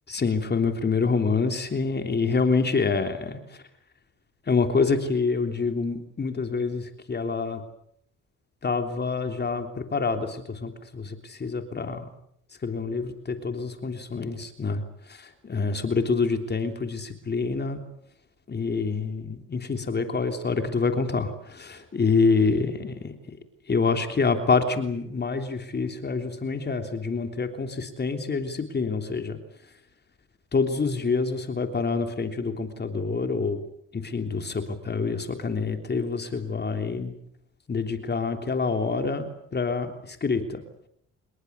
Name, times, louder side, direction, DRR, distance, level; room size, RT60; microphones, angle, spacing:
voice 1, 0.1-3.6 4.4-7.6 8.6-12.1 12.6-17.8 18.5-23.4 23.7-29.4 30.5-33.6 33.9-37.1 37.7-40.6, left 4 dB, 35° left, 6 dB, 3.3 m, -27 dB
26.5 x 21.5 x 8.3 m, 0.70 s
cardioid pair, 90°, 30 cm